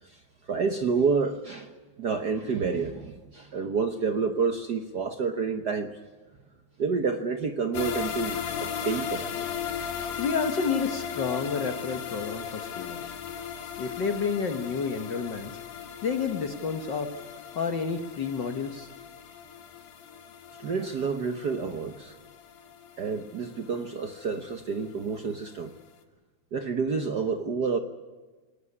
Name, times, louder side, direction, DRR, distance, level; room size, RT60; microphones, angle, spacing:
voice 1, 0.0-5.9 6.8-9.6 10.1-10.2 20.6-22.2 23.0-25.7 26.5-27.8, right 5 dB, 70° right, 7 dB, 0.9 m, -29 dB
sound 1, 7.7-24.8 25.2-25.3 25.7-25.8, left 8 dB, 85° left, 3.2 m, -37 dB
voice 2, 10.2-13.0 13.8-15.5 16.0-17.1 17.5-18.9, left 5 dB, 55° left, 7 dB, 1.3 m, -30 dB
19.0 x 18.5 x 9.8 m, 1.3 s
omnidirectional pair, 3.4 m